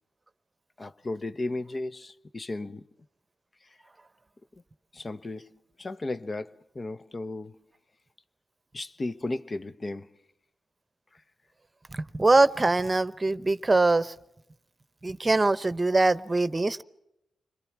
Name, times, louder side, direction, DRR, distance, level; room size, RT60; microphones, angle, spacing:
voice 1, 0.8-2.9 4.9-7.6 8.7-10.1, left 2 dB, 40° left, 0.9 m, -35 dB
voice 2, 12.2-14.1 15.0-16.8, right 2 dB, 30° right, 0.9 m, -22 dB
29.5 x 21.5 x 6.0 m
cardioid pair, 55°, 0 cm